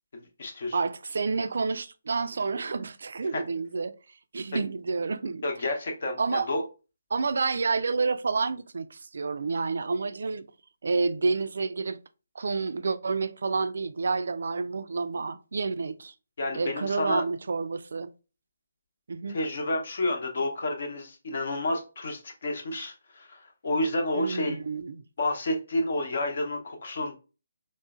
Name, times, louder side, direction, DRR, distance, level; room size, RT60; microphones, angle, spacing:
voice 1, 0.1-0.8 3.3-3.4 5.4-6.6 16.4-17.2 19.3-24.6 25.2-27.2, left 1 dB, 50° left, 0.8 m, -30 dB
voice 2, 0.7-3.9 4.3-5.5 6.2-6.5 7.1-10.5 10.8-12.0 12.4-16.1 16.5-18.1 19.1-19.4 24.2-25.0, right 4 dB, 55° right, 0.3 m, -29 dB
4.6 x 2.1 x 2.4 m
figure-of-eight pair, 145°, 0 cm